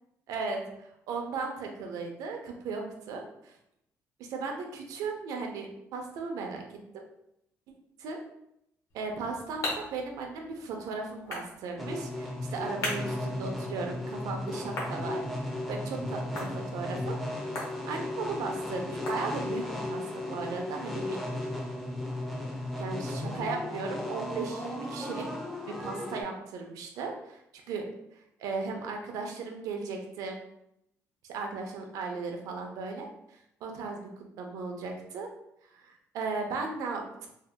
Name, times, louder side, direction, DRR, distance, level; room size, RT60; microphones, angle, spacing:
voice 1, 0.3-3.5 4.2-7.0 8.0-8.2 8.9-15.2 15.7-17.2 17.8-20.0 20.3-21.6 22.8-25.2 25.7-27.4 27.7-27.8 28.1-30.4 31.3-35.3 35.6-37.3, right 4 dB, 85° right, 2 dB, 0.6 m, -36 dB
sound 1, 8.9-19.8, left 2 dB, 65° left, 0.9 m, -42 dB
sound 2, 11.8-26.2, left 1 dB, ahead, 0.4 m, -35 dB
2.7 x 2.2 x 3.4 m, 0.79 s
cardioid pair, 175°, 6 cm